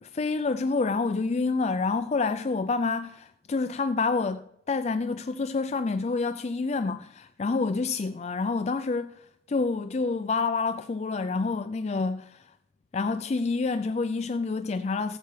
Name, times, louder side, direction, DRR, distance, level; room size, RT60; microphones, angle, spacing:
voice 1, 0.0-9.2 9.5-12.5 12.9-15.2, left 4 dB, 35° left, 0.3 m, -28 dB
16.0 x 7.9 x 3.3 m
head